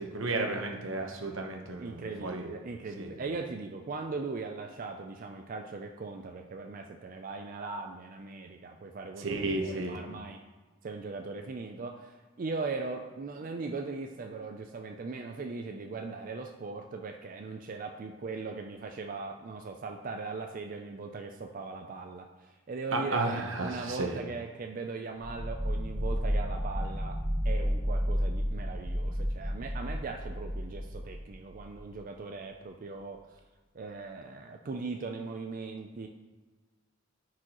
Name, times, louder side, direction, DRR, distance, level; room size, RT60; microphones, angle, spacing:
voice 1, 0.0-2.5 3.0-3.1 9.2-10.0 22.9-24.1, right 2 dB, 85° right, 3 dB, 1.0 m, -33 dB
voice 2, 1.8-10.4 10.8-27.2 27.4-33.4 33.7-36.1, right 3 dB, 45° right, 3 dB, 0.4 m, -39 dB
sound 1, 25.2-31.9, equal, ahead, 1.6 m, -32 dB
9.9 x 4.7 x 3.0 m, 1.3 s
head